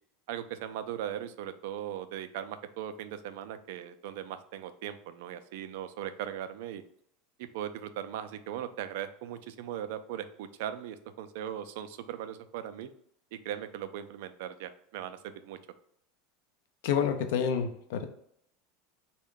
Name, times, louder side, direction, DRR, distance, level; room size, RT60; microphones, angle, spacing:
voice 1, 0.3-6.8 7.4-12.9 13.3-15.6, right 10 dB, 70° right, 11 dB, 0.3 m, -39 dB
voice 2, 16.8-18.1, left 7 dB, 75° left, 7 dB, 0.5 m, -28 dB
3.5 x 2.2 x 3.7 m, 0.71 s
supercardioid pair, 125°, 0 cm